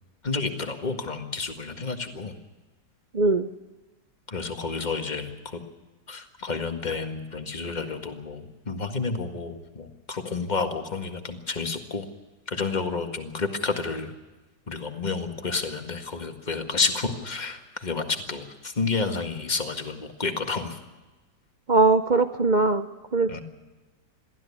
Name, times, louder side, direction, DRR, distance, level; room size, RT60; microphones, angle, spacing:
voice 1, 0.2-2.3 4.3-5.6 6.1-12.1 12.5-14.1 14.7-20.8 23.3-23.4, left 4 dB, 25° left, 6 dB, 1.8 m, -30 dB
voice 2, 3.1-3.5 21.7-22.9 23.1-23.3, right 3 dB, 75° right, 9 dB, 0.4 m, -20 dB
22.5 x 15.5 x 8.5 m, 1.2 s
omnidirectional pair, 2.0 m